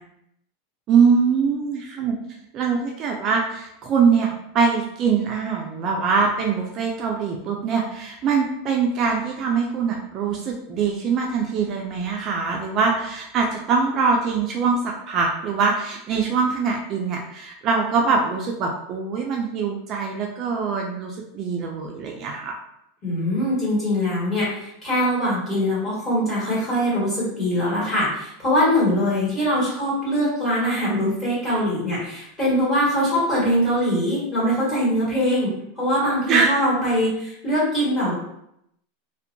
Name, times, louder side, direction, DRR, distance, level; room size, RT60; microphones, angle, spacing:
voice 1, 0.9-2.2 2.5-22.5 36.3-36.5, right 5 dB, 35° right, 0 dB, 0.3 m, -23 dB
voice 2, 23.0-38.1, equal, 20° left, -8 dB, 1.5 m, -22 dB
2.6 x 2.1 x 2.6 m, 0.78 s
supercardioid pair, 150°, 0 cm